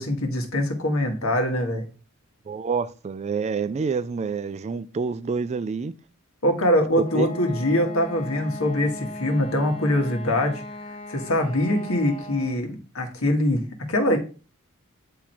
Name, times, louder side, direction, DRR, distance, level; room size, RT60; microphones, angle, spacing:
voice 1, 0.0-1.8 6.4-14.2, left 1 dB, 70° left, 1.7 m, -23 dB
voice 2, 2.5-5.9 7.1-7.3, right 5 dB, 30° right, 0.3 m, -27 dB
Wind instrument woodwind instrument, 7.0-12.7, left 1 dB, 25° left, 0.9 m, -38 dB
8.9 x 3.7 x 4.5 m
head